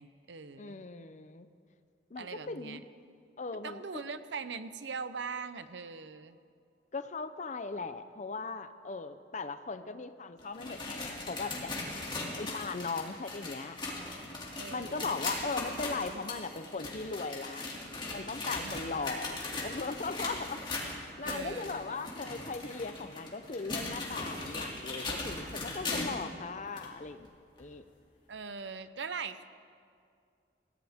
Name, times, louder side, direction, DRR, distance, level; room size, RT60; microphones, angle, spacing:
voice 1, 0.0-0.8 2.2-2.8 3.6-6.4 14.6-15.1 18.6-19.2 21.2-22.0 28.3-29.5, right 5 dB, 80° right, 12 dB, 0.7 m, -41 dB
voice 2, 0.6-1.5 2.1-2.8 3.4-4.0 6.9-11.8 12.4-13.8 14.7-17.6 18.1-27.3 27.6-27.8, left 4 dB, 40° left, 10 dB, 0.6 m, -38 dB
sound 1, 10.4-26.3 26.8-26.9 27.6-27.7 28.6-28.7, left 2 dB, 25° left, 2.6 m, -39 dB
22.5 x 16.0 x 3.6 m, 2.3 s
head